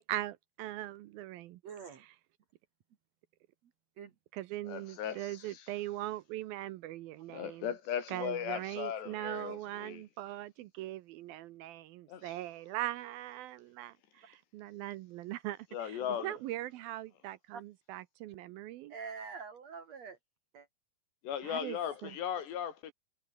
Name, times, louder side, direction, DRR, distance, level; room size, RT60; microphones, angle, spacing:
voice 1, 0.0-1.6 2.0-2.1 4.3-7.7 8.1-18.9 21.4-21.8 22.0-22.1, right 15 dB, 80° right, 2.3 m, -41 dB
voice 2, 1.6-2.0 4.0-4.1 17.5-17.6 18.9-20.2 20.5-20.7, right 5 dB, 60° right, 2.0 m, -45 dB
voice 3, 4.6-5.7 7.3-10.0 12.1-12.4 15.7-16.4 21.2-22.9, left 9 dB, 90° left, 5.0 m, -38 dB
omnidirectional pair, 4.8 m